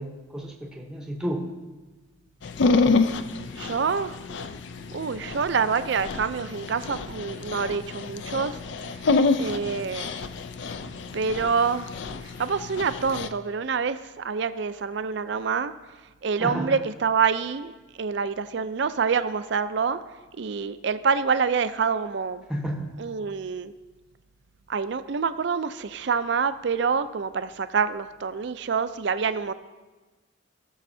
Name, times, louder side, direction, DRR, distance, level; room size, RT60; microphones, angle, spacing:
voice 1, 0.0-1.5 16.4-16.8 22.5-22.9, equal, 5° right, 2 dB, 0.8 m, -31 dB
Dog, 2.4-13.3, left 3 dB, 60° left, 0.4 m, -28 dB
voice 2, 3.6-4.2 4.9-8.6 9.4-10.1 11.1-11.9 12.2-15.7 16.2-17.7 18.0-20.0 20.3-22.4 23.0-23.7 24.7-29.5, right 5 dB, 60° right, 12 dB, 0.4 m, -26 dB
18.0 x 6.4 x 2.7 m, 1.2 s
head